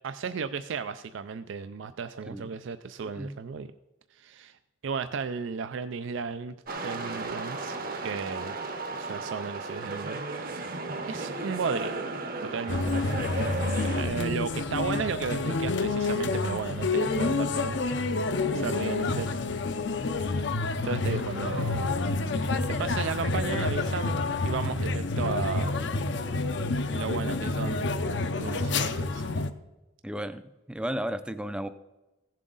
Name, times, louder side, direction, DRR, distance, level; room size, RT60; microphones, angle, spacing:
voice 1, 0.0-3.7 4.2-4.5 4.8-6.5 6.8-7.8 8.0-8.5 9.0-10.2 10.5-10.8 11.1-11.9 12.4-12.8 14.0-17.8 18.5-19.3 20.2-20.4 20.8-22.0 22.8-25.8 26.9-27.9 28.4-29.2, right 5 dB, 70° right, 11 dB, 0.4 m, -34 dB
voice 2, 3.0-3.4 18.5-18.8 30.0-31.7, equal, 5° right, 12 dB, 0.4 m, -34 dB
sound 1, 6.7-14.0, right 3 dB, 45° right, 0.8 m, -34 dB
sound 2, 12.7-29.5, left 3 dB, 60° left, 0.6 m, -28 dB
15.5 x 7.4 x 3.9 m, 1.0 s
head